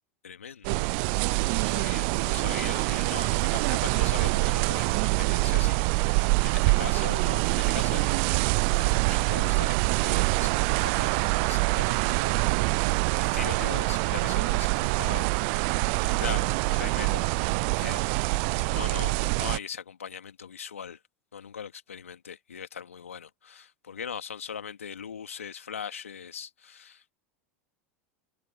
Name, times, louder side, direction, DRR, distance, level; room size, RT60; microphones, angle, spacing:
voice 1, 0.2-0.9 1.4-8.2 8.7-18.4 18.7-21.0 21.3-27.1, left 7 dB, 85° left, 2.4 m, -40 dB
sound 1, 0.6-19.6, right 33 dB, 55° right, 0.4 m, -25 dB
hypercardioid pair, 85°, 7 cm